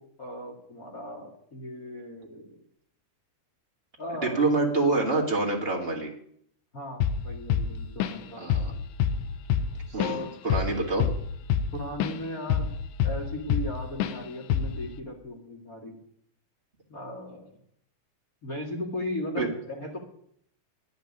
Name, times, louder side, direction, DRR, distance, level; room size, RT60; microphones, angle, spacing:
voice 1, 0.0-2.6 4.0-4.4 6.7-8.6 10.0-10.3 11.7-12.7 13.0-16.0 16.9-17.6 18.4-20.0, left 1 dB, 40° left, -1 dB, 1.2 m, -37 dB
voice 2, 4.2-6.1 8.4-8.7 9.9-10.2 10.4-11.1 19.4-19.5, right 3 dB, 25° right, 0 dB, 1.3 m, -26 dB
Drum kit / Drum, 7.0-7.3 7.5-8.3 8.5-8.8 9.0-12.2 12.5-13.7 14.0-14.2 14.5-14.8, left 8 dB, 80° left, 2.6 m, -26 dB
10.5 x 8.2 x 9.5 m, 0.67 s
omnidirectional pair, 4.7 m